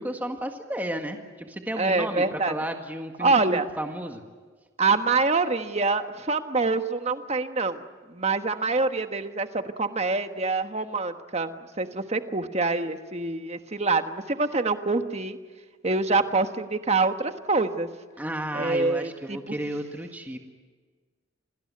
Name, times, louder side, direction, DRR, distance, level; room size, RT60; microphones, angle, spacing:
voice 1, 0.0-4.2 18.2-20.4, right 1 dB, 10° right, 4 dB, 1.7 m, -33 dB
voice 2, 1.8-2.5 3.2-3.7 4.8-15.4 15.8-17.9 18.5-19.5, right 3 dB, 30° right, 8 dB, 1.3 m, -25 dB
28.0 x 19.5 x 9.6 m, 1.5 s
head